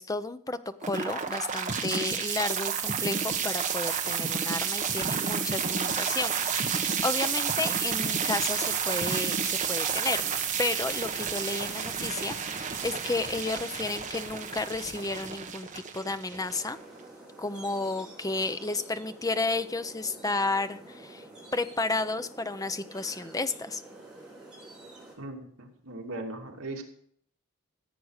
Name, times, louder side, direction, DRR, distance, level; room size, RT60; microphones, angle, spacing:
voice 1, 0.0-16.8 17.4-21.2 21.5-23.8, left 3 dB, 15° left, 11 dB, 0.7 m, -32 dB
sound 1, 0.8-16.8, right 6 dB, 35° right, 1.4 m, -30 dB
sound 2, 16.3-25.1, right 2 dB, 5° right, 4.8 m, -48 dB
voice 2, 25.2-26.8, right 2 dB, 75° right, 1 dB, 2.7 m, -39 dB
15.5 x 8.6 x 6.5 m, 0.64 s
head